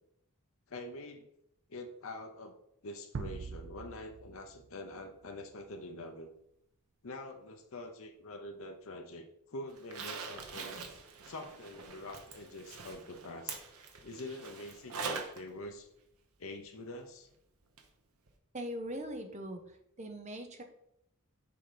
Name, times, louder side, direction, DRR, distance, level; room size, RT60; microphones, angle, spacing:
voice 1, 0.7-1.3 1.7-2.5 2.8-6.3 7.0-10.8 11.2-13.6 14.0-15.9 16.4-17.3, left 2 dB, 65° left, 3 dB, 0.7 m, -45 dB
sound 1, 3.1-5.6, right 5 dB, 55° right, 0.4 m, -44 dB
Zipper (clothing), 9.8-15.4 15.8-15.9 17.8-17.9 18.3-18.4, right 5 dB, 85° right, 1.0 m, -43 dB
voice 2, 18.5-19.6 20.0-20.6, equal, 30° right, 5 dB, 0.8 m, -40 dB
6.8 x 3.8 x 5.1 m, 0.76 s
head